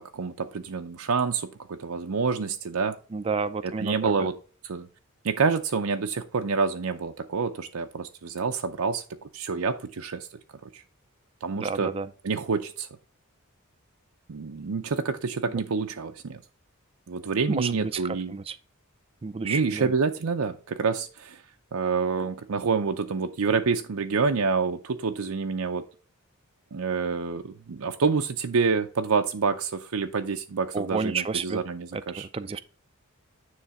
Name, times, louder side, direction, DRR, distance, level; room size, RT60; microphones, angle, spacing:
voice 1, 0.0-3.0 3.6-4.3 4.6-4.9 5.2-10.3 10.6-10.8 11.4-11.9 12.2-12.9 14.3-16.4 17.1-18.3 19.4-21.4 21.7-25.8 26.7-32.3, right 5 dB, 90° right, 0.6 m, -27 dB
voice 2, 3.1-4.3 11.5-12.1 17.5-18.6 19.2-19.9 30.7-31.6 31.9-32.6, right 4 dB, 25° right, 0.4 m, -31 dB
9.6 x 3.3 x 4.8 m
head